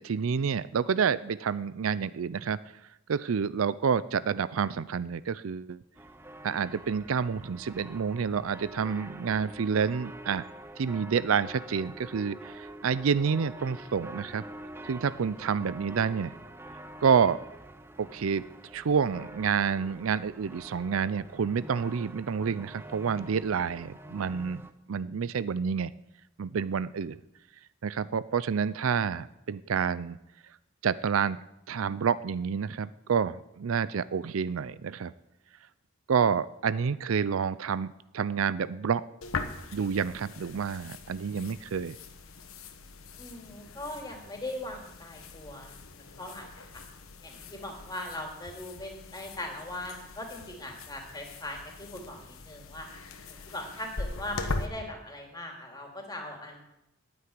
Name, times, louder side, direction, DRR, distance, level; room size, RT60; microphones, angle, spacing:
voice 1, 0.0-2.6 3.1-5.8 6.4-10.4 10.8-14.4 14.8-16.4 17.0-17.4 18.0-18.4 18.7-24.6 24.9-25.9 26.4-27.2 27.8-30.2 30.8-35.1 36.1-39.0 39.7-42.0, right 6 dB, 80° right, 17 dB, 0.5 m, -28 dB
sound 1, 5.9-24.7, right 1 dB, 10° right, 0.6 m, -46 dB
sound 2, 39.2-54.7, left 3 dB, 90° left, 1.2 m, -41 dB
voice 2, 43.2-45.8 46.2-46.8 47.2-52.9 53.3-56.6, left 1 dB, 20° left, 1 dB, 2.8 m, -40 dB
9.4 x 8.9 x 9.5 m, 0.87 s
head